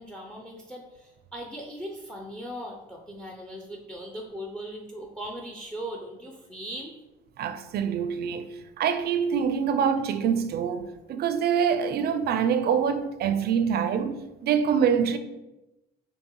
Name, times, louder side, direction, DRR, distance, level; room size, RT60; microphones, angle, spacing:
voice 1, 0.0-6.9, equal, 5° left, 0.6 m, -39 dB
voice 2, 7.4-15.2, right 7 dB, 55° right, 0.4 m, -25 dB
4.4 x 2.7 x 3.1 m
supercardioid pair, 75°, 19 cm